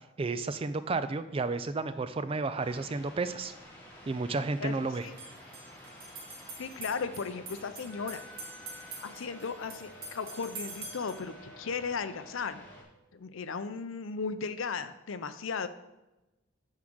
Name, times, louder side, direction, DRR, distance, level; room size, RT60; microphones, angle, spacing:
voice 1, 0.2-3.5 4.1-5.1, right 3 dB, 25° right, 12 dB, 0.3 m, -32 dB
sound 1, 2.6-12.8, equal, 10° left, 1.8 m, -51 dB
sound 2, 3.4-3.5 5.0-11.3, right 3 dB, 45° right, 1.7 m, -46 dB
voice 2, 4.6-5.1 6.6-8.2 9.0-12.6 13.1-15.7, left 5 dB, 70° left, 12 dB, 0.5 m, -36 dB
Wind instrument woodwind instrument, 7.9-13.1, left 2 dB, 45° left, 2.7 m, -55 dB
9.5 x 3.7 x 6.2 m, 1.0 s
head